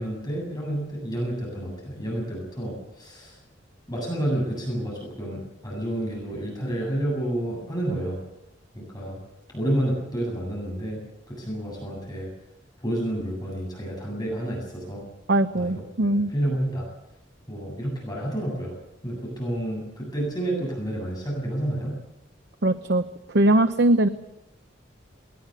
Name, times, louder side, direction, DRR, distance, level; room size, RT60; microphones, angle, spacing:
voice 1, 0.0-3.4 3.9-8.2 8.7-9.2 9.5-11.0 11.3-12.3 12.8-15.1 15.5-15.8 16.3-16.9 17.5-18.8 19.0-22.0, right 1 dB, 20° left, -2 dB, 8.0 m, -29 dB
voice 2, 15.3-16.3 22.6-23.0 23.3-24.1, right 1 dB, 60° right, 9 dB, 0.9 m, -20 dB
21.0 x 19.0 x 8.2 m, 0.89 s
head